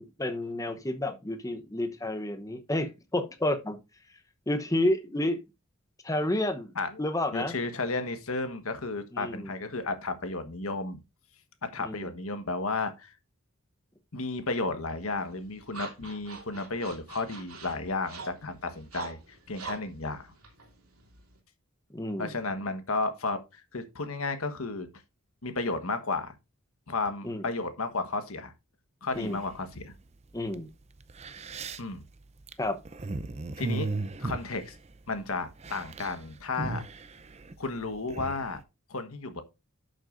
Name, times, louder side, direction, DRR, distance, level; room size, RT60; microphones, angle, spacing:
voice 1, 0.0-3.8 4.5-5.4 6.0-6.7 7.0-7.5 9.1-9.5 11.8-12.1 21.9-22.3 27.2-27.4 29.1-29.4 30.3-30.7 32.6-32.8, left 1 dB, 15° left, 0.9 m, -30 dB
voice 2, 6.7-7.0 7.3-11.0 11.6-13.2 14.1-20.3 22.2-24.9 25.4-26.4 26.9-28.5 29.0-29.9 31.8-32.0 33.6-33.9 34.2-34.8 35.1-36.8 37.6-38.6 38.9-39.4, left 3 dB, 80° left, 1.3 m, -33 dB
sound 1, 14.9-21.4, right 3 dB, 85° right, 2.7 m, -45 dB
sound 2, 29.1-29.8 30.5-30.6 31.0-35.2 35.5-36.2 36.4-38.5, right 3 dB, 30° right, 0.6 m, -36 dB
11.5 x 6.4 x 2.6 m
head